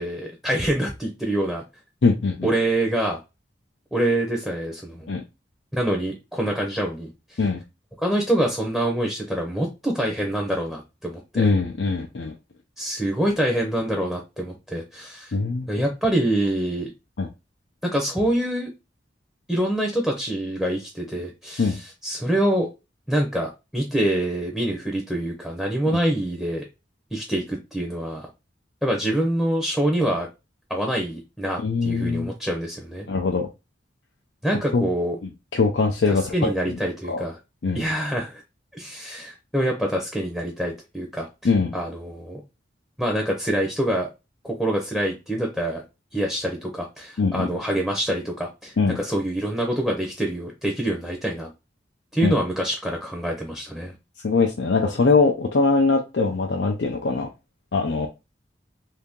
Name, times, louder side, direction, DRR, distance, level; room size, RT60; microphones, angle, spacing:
voice 1, 0.0-1.6 2.4-3.2 3.9-5.1 5.7-7.4 8.0-11.5 12.8-15.3 15.7-16.9 17.9-18.7 19.5-22.7 23.1-26.6 27.1-28.3 28.8-30.3 30.7-33.1 34.4-35.2 36.1-37.4 37.7-38.4 38.7-41.3 41.7-42.4 43.0-44.1 44.4-45.8 46.1-51.5 52.1-53.9, right 1 dB, ahead, 1 dB, 0.7 m, -25 dB
voice 2, 2.0-2.5 5.1-5.2 7.4-7.6 11.3-12.3 15.3-15.7 17.2-17.3 21.6-21.8 25.9-26.0 31.6-32.3 33.1-33.5 34.7-34.9 35.5-36.5 37.1-37.2 37.6-37.8 41.4-41.7 47.2-47.5 48.8-49.0 52.2-52.4 54.2-57.3 57.7-58.1, left 4 dB, 70° left, 1 dB, 0.5 m, -22 dB
2.8 x 2.8 x 3.6 m, 0.26 s
head